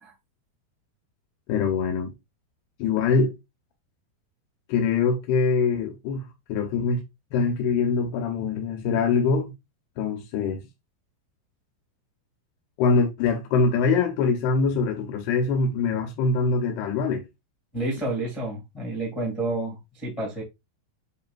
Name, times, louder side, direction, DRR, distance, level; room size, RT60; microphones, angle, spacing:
voice 1, 1.5-2.1 2.8-3.3 4.7-7.0 7.3-9.5 10.0-10.6 12.8-17.2, left 4 dB, 85° left, 3.2 m, -23 dB
voice 2, 17.7-20.4, right 2 dB, 15° left, 1.4 m, -30 dB
10.0 x 3.9 x 2.5 m
omnidirectional pair, 4.5 m